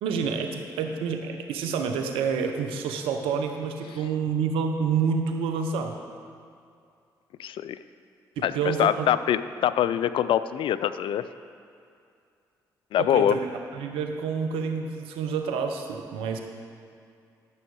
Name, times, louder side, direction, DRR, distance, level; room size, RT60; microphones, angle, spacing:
voice 1, 0.0-5.9 8.4-9.1 13.0-13.4 13.7-16.4, right 6 dB, 80° right, 4 dB, 0.9 m, -28 dB
voice 2, 7.4-7.8 8.4-8.5 8.8-11.3 12.9-13.4, left 10 dB, 65° left, 14 dB, 0.4 m, -24 dB
13.0 x 6.3 x 4.7 m, 2.4 s
hypercardioid pair, 50°, 9 cm